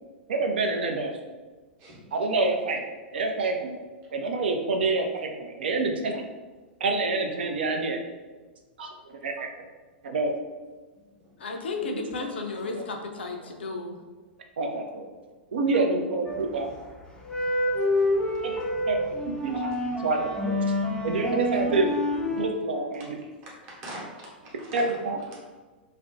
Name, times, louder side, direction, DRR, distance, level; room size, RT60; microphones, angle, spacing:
voice 1, 0.3-1.1 2.1-2.8 3.1-3.8 4.1-6.2 6.8-8.0 8.8-9.5 10.0-10.3 11.8-12.0 14.6-15.1 15.5-16.7 18.4-18.5 18.9-19.0 19.2-19.7 20.0-20.6 21.0-21.9 22.4-23.1 24.7-25.2, right 3 dB, 70° right, 4 dB, 0.4 m, -27 dB
voice 2, 11.4-14.0 15.7-16.2, left 3 dB, 75° left, 2 dB, 0.4 m, -34 dB
sound 1, 16.3-16.7 17.2-22.5, left 1 dB, 10° left, 0.4 m, -27 dB
voice 3, 17.7-18.1 18.9-19.0 23.0-23.1 23.6-24.9 25.3-25.4, right 1 dB, 40° right, -4 dB, 0.8 m, -43 dB
2.4 x 2.0 x 2.5 m, 1.3 s
figure-of-eight pair, 100°, 6 cm